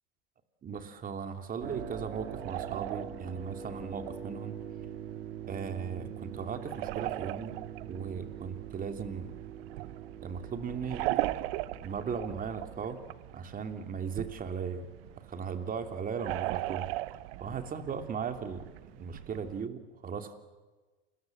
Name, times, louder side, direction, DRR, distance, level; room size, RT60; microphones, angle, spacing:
voice 1, 0.6-4.5 5.5-7.6 7.9-9.3 10.2-11.5 11.8-13.0 13.3-14.9 15.3-16.9 17.4-18.7 19.0-20.4, right 6 dB, 25° right, 7 dB, 2.9 m, -37 dB
sound 1, 1.6-19.7, right 18 dB, 60° right, 1.0 m, -40 dB
sound 2, 1.6-12.9, right 8 dB, 80° right, 3.3 m, -44 dB
28.5 x 22.0 x 7.9 m, 1.3 s
hypercardioid pair, 115°, 32 cm